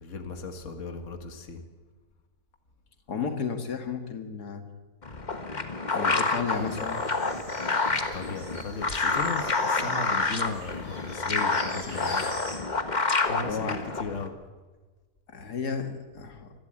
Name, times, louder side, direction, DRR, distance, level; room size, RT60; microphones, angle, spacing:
voice 1, 0.0-1.6 8.0-12.3 13.3-14.3, left 4 dB, 50° left, 6 dB, 2.0 m, -36 dB
voice 2, 3.1-4.6 5.9-7.0 11.9-12.4 13.4-13.8 15.3-16.5, left 5 dB, 85° left, 6 dB, 2.3 m, -33 dB
sound 1, 5.0-14.3, left 3 dB, 30° left, 1.4 m, -28 dB
sound 2, 6.5-12.6, equal, 40° right, 7.4 m, -45 dB
26.0 x 12.5 x 8.9 m, 1.3 s
omnidirectional pair, 1.6 m